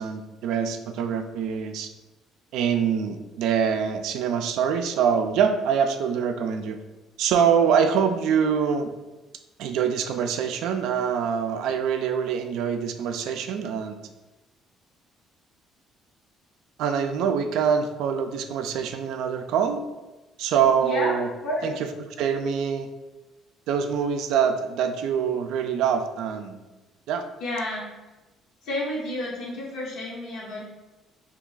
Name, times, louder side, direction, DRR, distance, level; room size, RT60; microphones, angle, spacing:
voice 1, 0.0-1.9 2.5-6.8 7.2-8.9 9.6-14.0 16.8-19.8 20.4-21.3 21.6-21.7 22.2-22.9 23.7-26.6 27.1-27.2, right 7 dB, 80° right, 7 dB, 0.3 m, -24 dB
voice 2, 20.8-21.7 27.4-27.9 28.6-30.6, left 1 dB, 80° left, -6 dB, 0.8 m, -30 dB
2.8 x 2.3 x 3.8 m, 1.1 s
cardioid pair, 100°, 0 cm